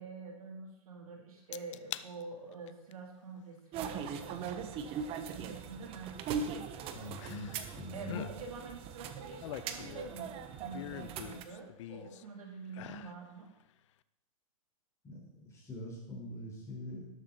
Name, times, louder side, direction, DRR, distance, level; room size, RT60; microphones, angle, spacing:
voice 1, 0.0-4.8 5.3-6.1 7.9-13.5, right 4 dB, 80° right, 0 dB, 4.0 m, -46 dB
sound 1, 1.5-2.1 2.5-2.9 4.5-4.6 7.2-7.7 8.0-8.3 9.1-10.2 10.7-12.2 12.7-13.2 13.6-13.7, left 13 dB, 55° left, 0.6 m, -44 dB
sound 2, 3.7-11.5, right 6 dB, 30° right, 1.2 m, -40 dB
voice 2, 6.9-8.2 15.0-17.1, left 1 dB, 15° left, -3 dB, 5.3 m, -44 dB
12.5 x 12.0 x 4.4 m, 0.83 s
hypercardioid pair, 135°, 18 cm